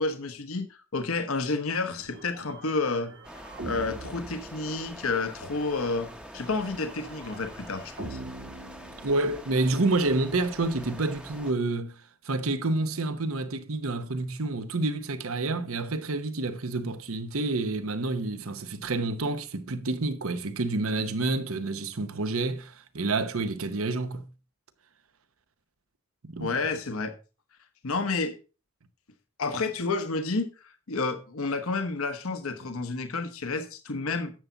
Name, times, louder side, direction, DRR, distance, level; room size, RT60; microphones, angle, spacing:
voice 1, 0.0-3.1 3.6-8.2 26.4-27.1 27.8-28.3 29.4-30.5 30.9-34.3, left 3 dB, 85° left, 1.1 m, -30 dB
sound 1, 2.0-5.2 6.4-9.6, right 2 dB, 55° right, 1.5 m, -44 dB
sound 2, 3.2-11.5, equal, 5° right, 0.7 m, -45 dB
voice 2, 9.0-11.9 12.2-24.2 26.2-26.5, right 2 dB, 80° right, 1.0 m, -28 dB
10.5 x 7.1 x 4.0 m
head